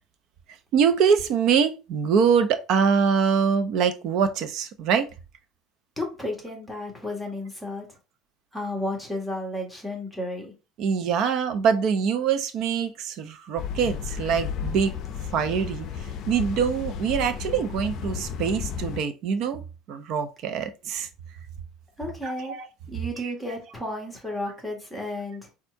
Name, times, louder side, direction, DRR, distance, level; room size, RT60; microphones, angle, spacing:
voice 1, 0.7-5.1 10.8-14.9 15.3-15.9 16.3-19.6 19.9-21.1 22.2-22.6 23.2-23.3, right 6 dB, 55° right, 0.7 m, -24 dB
voice 2, 6.0-7.9 8.5-10.5 22.0-22.5 22.9-25.5, left 1 dB, 5° left, 1.5 m, -32 dB
sound 1, 13.6-19.0, left 7 dB, 50° left, 0.5 m, -33 dB
4.3 x 2.4 x 4.6 m
cardioid pair, 140°, 0 cm